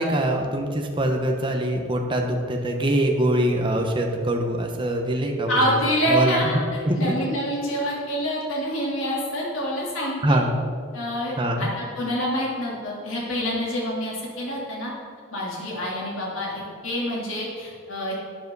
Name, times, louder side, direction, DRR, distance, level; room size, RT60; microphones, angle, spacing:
voice 1, 0.0-5.6 6.1-7.0 10.2-10.6 11.4-11.7, right 1 dB, 25° right, 2 dB, 1.0 m, -23 dB
voice 2, 5.5-6.6 7.0-10.4 10.9-14.9 15.3-18.1, equal, 80° left, -4 dB, 3.3 m, -26 dB
12.5 x 9.6 x 4.0 m, 2.2 s
head